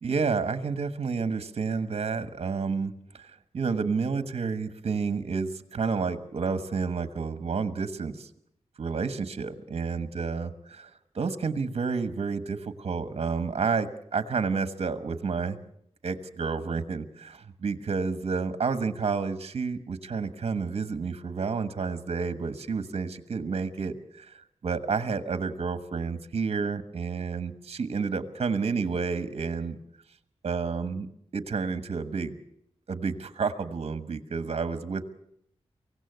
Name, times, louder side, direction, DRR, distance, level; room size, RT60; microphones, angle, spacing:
voice 1, 0.0-3.2 3.5-8.3 8.8-10.9 11.1-15.6 16.0-24.3 24.6-29.8 30.4-31.1 31.3-32.4 32.9-35.1, right 5 dB, 65° right, 12 dB, 1.3 m, -30 dB
24.0 x 16.5 x 8.0 m, 0.71 s
wide cardioid pair, 110°, 11 cm